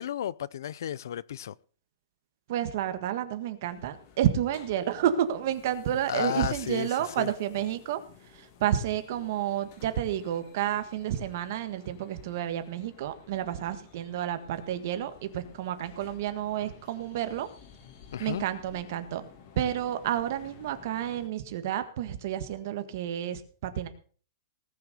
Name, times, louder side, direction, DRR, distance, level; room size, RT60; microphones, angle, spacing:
voice 1, 0.0-1.5 6.1-6.9 7.2-7.3 18.1-18.4, left 10 dB, 65° left, 0.6 m, -33 dB
voice 2, 2.5-17.5 18.2-19.2 19.5-23.9, right 11 dB, 45° right, 1.6 m, -30 dB
sound 1, 3.7-21.3, left 7 dB, 35° left, 2.6 m, -54 dB
19.0 x 6.5 x 6.6 m
hypercardioid pair, 170°, 2 cm